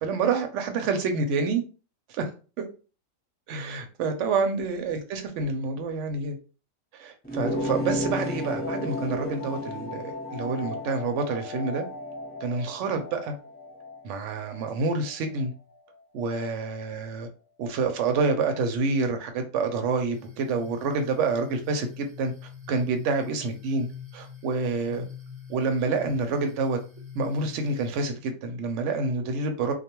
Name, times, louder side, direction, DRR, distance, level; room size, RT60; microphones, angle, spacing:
voice 1, 0.0-1.6 2.1-2.3 2.6-2.7 3.5-6.4 6.9-10.0 10.3-11.8 12.4-13.3 14.0-15.5 16.1-17.3 17.6-22.3 22.7-23.9 24.1-25.0 25.5-26.8 27.1-29.7, right 4 dB, 70° right, 6 dB, 0.9 m, -27 dB
sound 1, 7.2-12.5, equal, 10° left, 0.7 m, -33 dB
sound 2, 7.6-16.9, left 3 dB, 50° left, 0.6 m, -41 dB
sound 3, 20.1-28.0, left 7 dB, 40° right, 0.8 m, -43 dB
2.2 x 2.2 x 2.9 m, 0.35 s
omnidirectional pair, 1.4 m